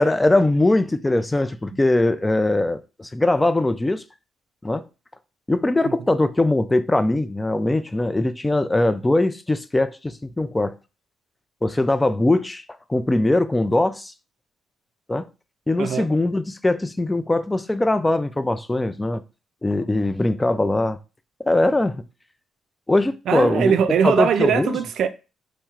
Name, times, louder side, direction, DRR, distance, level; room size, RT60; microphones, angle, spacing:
voice 1, 0.0-4.0 4.6-4.8 5.5-10.8 11.6-12.6 12.9-14.1 15.1-15.3 15.7-19.2 19.6-21.0 21.4-22.0 22.9-23.7 24.0-24.8, left 2 dB, 15° left, 0.3 m, -21 dB
voice 2, 15.8-16.1 23.3-25.1, right 7 dB, 70° right, 0.4 m, -21 dB
4.4 x 3.1 x 2.4 m
cardioid pair, 90°, 0 cm